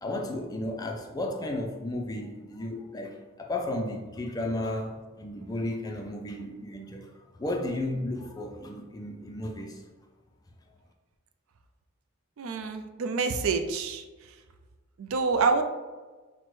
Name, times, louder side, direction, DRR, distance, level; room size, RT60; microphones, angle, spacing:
voice 1, 0.0-7.1 7.4-9.8, left 1 dB, 15° left, 2 dB, 0.3 m, -33 dB
voice 2, 12.4-14.0 15.0-15.6, right 4 dB, 70° right, 7 dB, 0.4 m, -27 dB
5.8 x 2.1 x 3.1 m, 1.3 s
head